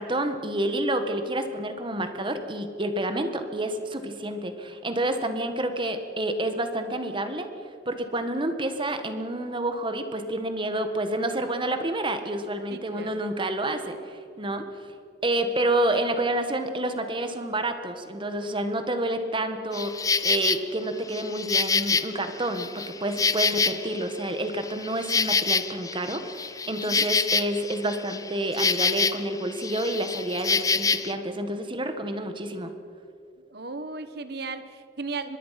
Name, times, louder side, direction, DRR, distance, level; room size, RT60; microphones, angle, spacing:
voice 1, 0.0-7.5 7.8-14.6 15.2-32.7, right 1 dB, 30° right, 8 dB, 1.6 m, -29 dB
voice 2, 12.7-13.2 26.7-27.1 33.5-35.4, right 3 dB, 65° right, 11 dB, 1.3 m, -36 dB
Insect, 19.7-20.6 21.1-24.1 24.5-29.3 29.6-31.1, left 5 dB, 20° left, 0.6 m, -26 dB
24.0 x 21.0 x 5.9 m, 2.5 s
head